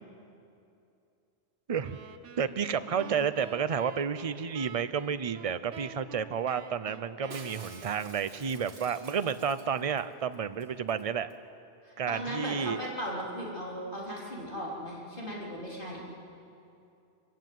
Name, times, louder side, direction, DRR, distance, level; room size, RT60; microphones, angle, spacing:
sound 1, 1.8-8.4, right 8 dB, 85° right, 1.3 m, -48 dB
voice 1, 2.4-11.3 12.0-12.8, right 7 dB, 35° right, 13 dB, 0.6 m, -31 dB
voice 2, 2.9-3.3 11.8-16.0, equal, 50° left, -5 dB, 4.1 m, -37 dB
Shatter, 7.3-10.0 10.3-10.4 10.6-11.0 11.3-11.4, right 2 dB, 60° right, 2.3 m, -50 dB
24.0 x 15.5 x 9.3 m, 2.7 s
omnidirectional pair, 1.2 m